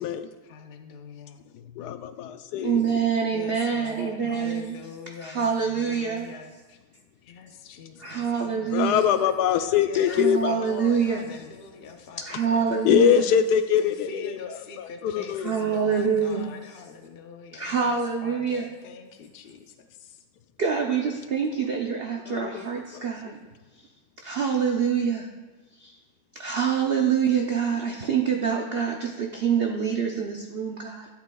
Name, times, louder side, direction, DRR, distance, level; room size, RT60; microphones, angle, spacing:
voice 1, 0.4-1.4 3.3-6.8 7.2-12.8 13.8-20.2, left 5 dB, 50° left, 5 dB, 0.7 m, -43 dB
voice 2, 1.7-2.8 8.7-10.6 12.8-14.4 14.8-15.5 22.3-22.6 22.9-23.0, left 9 dB, 90° left, 9 dB, 1.2 m, -23 dB
voice 3, 2.6-4.8 5.2-6.3 8.0-9.1 10.1-11.2 12.2-13.3 15.4-16.5 17.5-18.7 20.6-23.4 24.2-25.3 25.8-26.0 26.3-31.1, right 6 dB, 55° right, 1 dB, 0.7 m, -26 dB
13.0 x 8.3 x 2.3 m, 1.3 s
omnidirectional pair, 1.7 m